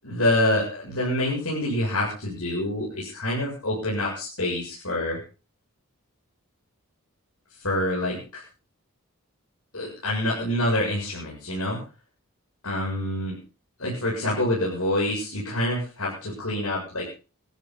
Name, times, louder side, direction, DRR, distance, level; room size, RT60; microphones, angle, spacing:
voice 1, 0.0-5.2 7.6-8.4 9.7-11.8 12.6-13.4 13.8-17.1, left 1 dB, 80° left, -4 dB, 7.3 m, -26 dB
21.5 x 14.0 x 4.1 m, 0.36 s
head